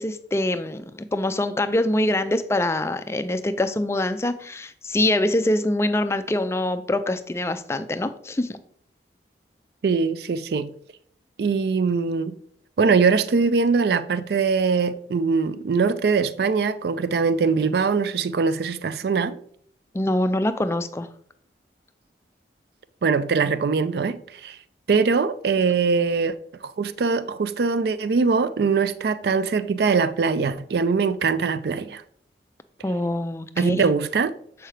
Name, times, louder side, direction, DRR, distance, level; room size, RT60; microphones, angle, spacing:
voice 1, 0.0-8.6 19.9-21.1 32.8-33.8, left 1 dB, 15° left, 0.3 m, -24 dB
voice 2, 9.8-10.7 11.4-12.4 12.8-19.4 23.0-24.6 24.9-26.3 26.6-32.0 33.6-34.3, right 5 dB, 60° right, 0.4 m, -22 dB
7.7 x 4.6 x 3.3 m
head